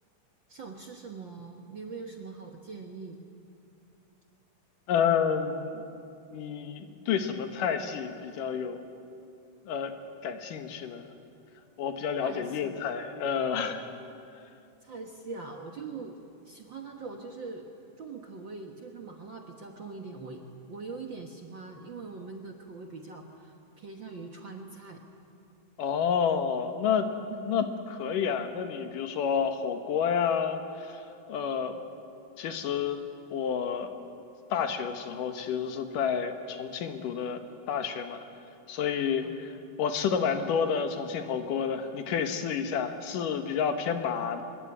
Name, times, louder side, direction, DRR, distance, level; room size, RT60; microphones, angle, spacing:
voice 1, 0.5-3.2 12.2-12.7 14.8-16.2 16.4-17.7 18.0-20.4 20.7-25.0 27.3-27.5 39.2-39.4, right 4 dB, 50° right, 3 dB, 1.4 m, -42 dB
voice 2, 4.9-5.9 6.3-8.8 9.7-9.9 10.2-11.1 11.8-13.8 25.8-27.1 27.4-31.0 31.3-31.8 32.4-33.0 33.3-33.9 34.5-37.4 37.7-38.2 38.7-39.5 39.8-44.4, left 7 dB, 80° left, 7 dB, 3.0 m, -29 dB
24.0 x 21.5 x 8.9 m, 2.6 s
omnidirectional pair, 3.8 m